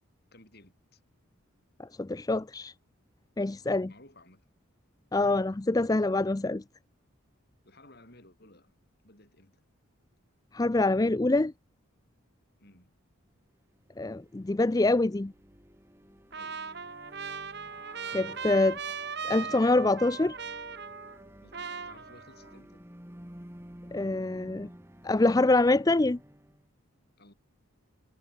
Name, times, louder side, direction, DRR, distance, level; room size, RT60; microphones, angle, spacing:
voice 1, 0.3-1.0 3.7-4.5 7.6-8.8 9.0-9.6 12.6-12.9 16.3-16.7 21.4-22.9 27.2-27.3, left 1 dB, 45° left, 6.1 m, -56 dB
voice 2, 1.8-2.7 3.4-3.9 5.1-6.6 10.5-11.5 14.0-15.3 18.1-18.8 19.3-20.4 23.9-24.7 25.0-26.2, left 2 dB, 15° left, 0.4 m, -25 dB
sound 1, 13.7-26.7, equal, 10° right, 2.0 m, -52 dB
Trumpet, 16.3-21.3 21.5-22.5, right 6 dB, 50° right, 3.7 m, -39 dB
head